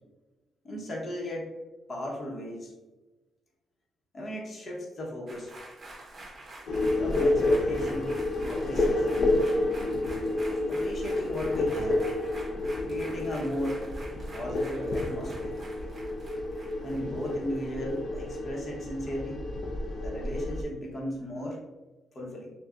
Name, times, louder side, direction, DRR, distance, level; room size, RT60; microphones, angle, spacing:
voice 1, 0.6-1.5 1.9-2.7 4.1-5.5 7.0-9.2 10.7-12.1 12.8-13.9 14.3-15.6 16.8-19.4 19.9-21.6 22.1-22.5, equal, 40° left, -3 dB, 1.0 m, -36 dB
sound 1, 5.3-18.0 18.3-18.4, right 1 dB, 40° right, 1.1 m, -47 dB
sound 2, 6.7-20.6, left 2 dB, 55° left, 0.7 m, -29 dB
6.5 x 2.3 x 2.5 m, 1.1 s
cardioid pair, 105°, 0 cm